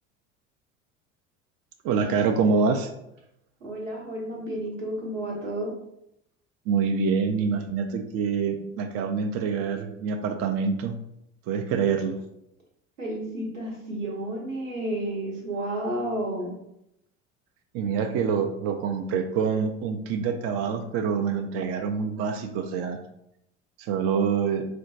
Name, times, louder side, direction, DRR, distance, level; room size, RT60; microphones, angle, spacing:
voice 1, 1.8-2.9 6.7-11.0 11.5-12.2 17.7-23.0 23.8-24.7, right 5 dB, 40° right, 6 dB, 0.4 m, -26 dB
voice 2, 3.6-5.7 13.0-16.6, right 1 dB, 85° right, -2 dB, 0.9 m, -31 dB
4.3 x 2.2 x 2.6 m, 0.80 s
figure-of-eight pair, 65°, 37 cm